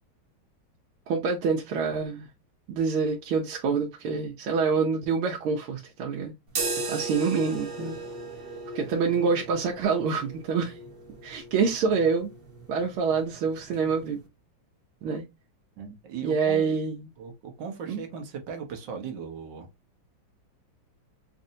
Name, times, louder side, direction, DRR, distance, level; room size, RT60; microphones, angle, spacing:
voice 1, 1.1-2.3 2.7-6.3 6.9-8.0 8.7-10.8 11.2-12.3 12.7-14.2 15.0-15.3 16.2-17.0 17.9-18.0, right 5 dB, 85° right, 1.6 m, -26 dB
sound 1, 6.5-14.3, right 3 dB, 40° right, 0.8 m, -37 dB
voice 2, 15.8-16.7 17.2-19.7, right 6 dB, 65° right, 1.5 m, -38 dB
5.3 x 2.6 x 2.7 m
omnidirectional pair, 2.3 m